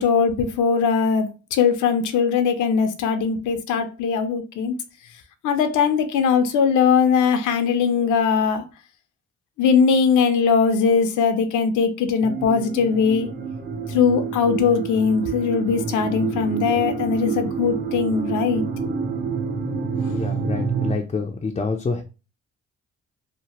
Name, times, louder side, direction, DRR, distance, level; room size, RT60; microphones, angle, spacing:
voice 1, 0.0-4.7 5.4-8.6 9.6-13.3 13.9-18.6 19.9-20.1, left 6 dB, 75° left, 0.6 m, -20 dB
sound 1, 12.2-20.9, right 5 dB, 35° right, 0.7 m, -28 dB
voice 2, 20.1-22.0, left 4 dB, 25° left, 0.4 m, -27 dB
2.9 x 2.0 x 2.8 m
cardioid pair, 90°, 30 cm